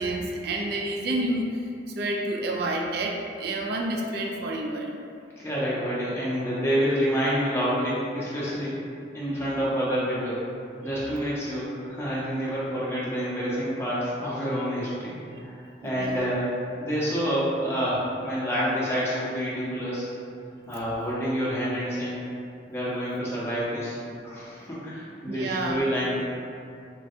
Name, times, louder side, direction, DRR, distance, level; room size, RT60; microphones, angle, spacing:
voice 1, 0.0-5.0 15.8-16.2 25.3-25.8, right 1 dB, 55° right, 0 dB, 0.3 m, -29 dB
voice 2, 5.4-8.8 9.1-10.4 10.8-15.5 15.8-16.5 16.8-20.1 20.7-22.2 22.7-24.0 24.2-26.2, equal, 15° left, -9 dB, 0.6 m, -28 dB
3.1 x 2.2 x 2.7 m, 2.5 s
head